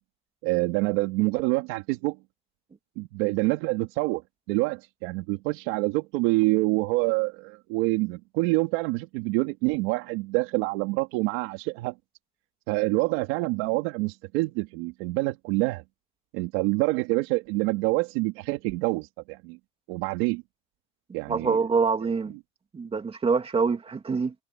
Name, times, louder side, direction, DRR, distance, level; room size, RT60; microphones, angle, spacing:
voice 1, 0.4-2.2 3.0-4.2 4.5-11.9 12.7-15.8 16.3-19.6 19.9-20.4 21.1-21.6, right 23 dB, 85° right, 2.9 m, -26 dB
voice 2, 21.3-22.3 22.7-24.3, right 5 dB, 20° right, 2.5 m, -25 dB
cardioid pair, 150°, 29 cm